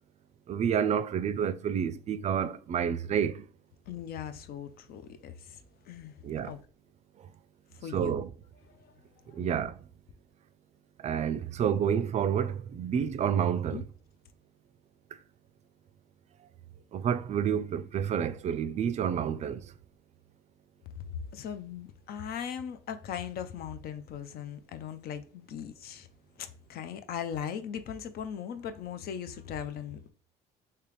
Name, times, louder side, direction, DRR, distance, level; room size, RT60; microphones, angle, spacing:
voice 1, 0.5-3.5 6.2-6.5 7.9-8.3 9.3-9.8 11.0-13.8 16.9-19.7, right 8 dB, 40° right, 0.4 m, -29 dB
voice 2, 3.9-6.2 6.4-6.6 7.7-8.2 8.7-8.9 9.3-9.4 13.7-13.8 20.9-21.0 21.3-26.1 26.4-30.1, left 8 dB, 65° left, 0.5 m, -39 dB
3.4 x 2.9 x 3.1 m
cardioid pair, 110°, 17 cm